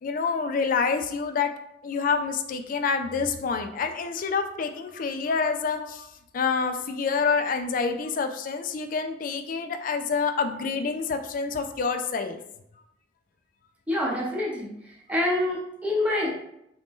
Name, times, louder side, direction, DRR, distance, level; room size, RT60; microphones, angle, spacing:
voice 1, 0.0-1.5 1.8-6.1 6.3-12.4, left 5 dB, 50° left, 7 dB, 0.3 m, -27 dB
voice 2, 13.9-14.7 15.1-16.3, left 1 dB, 10° right, -4 dB, 0.8 m, -26 dB
3.1 x 2.6 x 3.5 m, 0.79 s
head